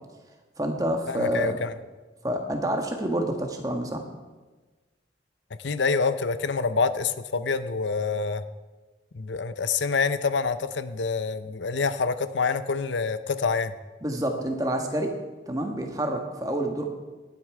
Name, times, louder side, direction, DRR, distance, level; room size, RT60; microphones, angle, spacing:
voice 1, 0.6-1.6 2.2-4.0 14.0-15.1 15.5-16.9, right 1 dB, 20° right, 3 dB, 1.4 m, -28 dB
voice 2, 1.1-1.7 5.6-8.4 9.1-13.7, left 4 dB, 85° left, 12 dB, 0.7 m, -26 dB
17.0 x 9.8 x 4.9 m, 1.3 s
head